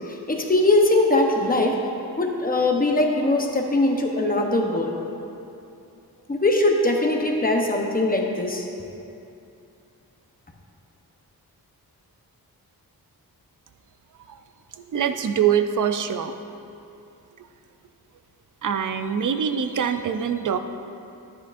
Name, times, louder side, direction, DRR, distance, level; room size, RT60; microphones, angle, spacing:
voice 1, 0.0-1.8 2.2-5.0 6.3-8.7, left 2 dB, 25° left, 1 dB, 0.8 m, -21 dB
voice 2, 14.9-16.4 17.4-17.5 18.6-20.6, right 8 dB, 55° right, 9 dB, 0.5 m, -24 dB
13.5 x 10.0 x 2.5 m, 2.7 s
wide cardioid pair, 175°, 38 cm